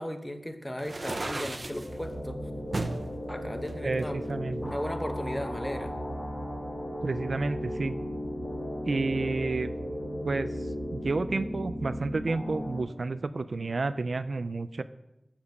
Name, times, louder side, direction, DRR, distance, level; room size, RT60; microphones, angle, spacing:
voice 1, 0.0-2.4 3.3-4.2 4.6-5.9, equal, 15° left, 7 dB, 0.9 m, -36 dB
sound 1, 0.8-1.9 2.7-3.0 3.6-4.7, right 2 dB, 50° right, 0.7 m, -34 dB
sound 2, 1.2-12.8, equal, 55° left, 2.7 m, -36 dB
voice 2, 3.8-4.7 7.0-8.0 8.9-9.7 10.2-10.5 10.9-14.8, right 3 dB, 70° right, 12 dB, 0.4 m, -30 dB
7.2 x 7.1 x 6.5 m, 0.90 s
wide cardioid pair, 70°, 0 cm